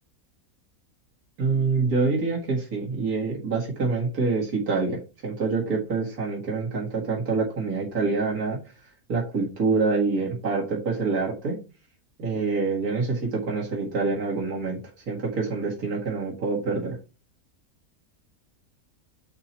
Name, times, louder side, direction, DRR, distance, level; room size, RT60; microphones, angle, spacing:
voice 1, 1.4-8.6 9.1-11.6 12.2-14.8 15.1-17.0, right 4 dB, 80° right, -3 dB, 2.5 m, -26 dB
7.7 x 4.4 x 4.2 m, 0.31 s
omnidirectional pair, 1.6 m